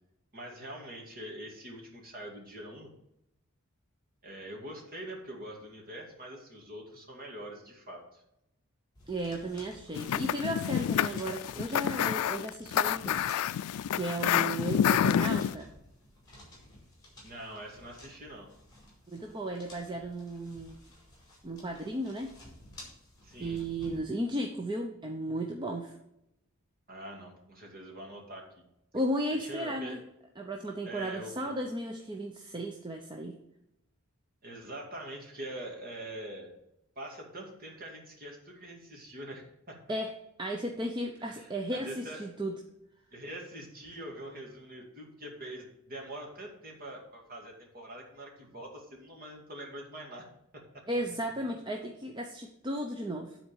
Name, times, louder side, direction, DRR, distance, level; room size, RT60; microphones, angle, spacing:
voice 1, 0.3-2.9 4.2-8.2 17.2-18.5 23.2-23.6 26.9-28.5 29.4-30.0 30.8-31.5 34.4-36.5 37.0-39.8 41.2-42.2 43.1-50.3 50.5-50.8, right 1 dB, 40° right, 0 dB, 2.3 m, -44 dB
sound 1, 8.9-24.0, left 1 dB, 20° left, 4.3 m, -54 dB
voice 2, 9.1-13.3 13.9-15.7 19.1-20.8 21.4-22.3 23.4-26.0 28.9-30.0 30.4-33.3 39.9-42.5 50.9-53.4, right 1 dB, 20° right, 2 dB, 0.7 m, -35 dB
sound 2, 9.9-15.5, left 9 dB, 90° left, 0.3 m, -28 dB
9.9 x 4.3 x 7.4 m, 0.84 s
head